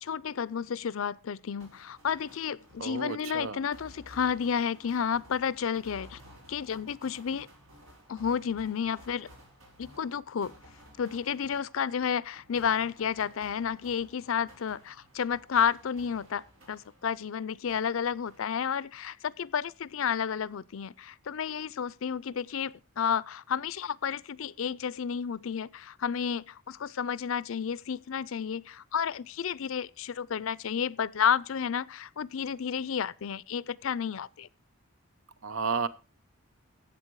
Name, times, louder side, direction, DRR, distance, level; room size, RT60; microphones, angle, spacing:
voice 1, 0.0-6.2 6.5-7.5 8.1-9.3 9.8-10.5 11.0-34.5, left 7 dB, 75° left, 0.5 m, -31 dB
sound 1, 1.6-17.3 17.7-19.0, equal, 90° right, 5.8 m, -55 dB
voice 2, 2.8-3.6 35.4-35.9, right 5 dB, 70° right, 0.8 m, -32 dB
14.5 x 8.2 x 4.7 m
head